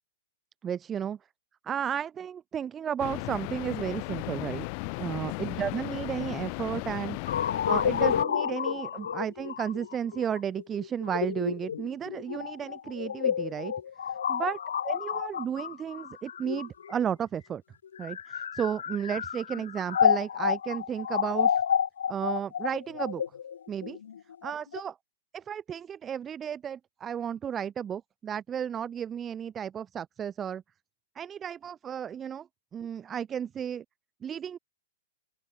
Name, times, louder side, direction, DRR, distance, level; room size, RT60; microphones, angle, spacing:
voice 1, 0.6-1.2 1.6-4.6 5.0-7.2 7.6-13.7 14.1-14.6 14.8-17.6 18.0-21.6 22.1-23.2 23.7-24.0 24.4-25.0 25.3-30.6 31.1-32.5 32.7-33.8 34.2-34.6, right 8 dB, 20° right, 1.0 m, -33 dB
sound 1, 3.0-8.3, left 40 dB or more, 45° left, 6.0 m, -35 dB
sound 2, 7.3-17.1 17.9-24.8, left 8 dB, 75° left, 3.6 m, -30 dB
open air
hypercardioid pair, 115°, 0 cm